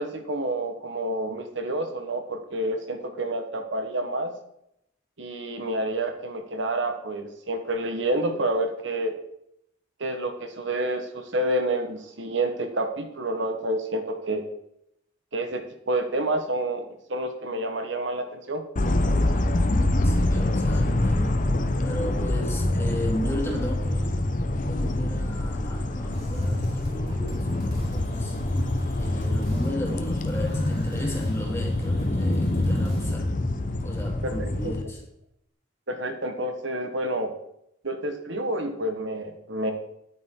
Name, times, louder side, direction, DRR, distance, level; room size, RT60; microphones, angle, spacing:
voice 1, 0.0-4.3 5.2-9.1 10.0-14.4 15.3-16.8 17.1-18.6 34.2-34.7 35.9-37.3 37.8-39.7, right 1 dB, 70° right, 6 dB, 1.2 m, -29 dB
sound 1, 18.8-34.8, left 1 dB, 40° left, 0.8 m, -25 dB
voice 2, 20.0-21.3 21.8-24.2 24.5-28.4 29.0-33.3 33.8-35.0, left 1 dB, 15° left, -1 dB, 2.3 m, -35 dB
sound 2, 26.1-33.2, equal, 30° right, 4.6 m, -44 dB
9.9 x 9.2 x 3.7 m, 0.77 s
head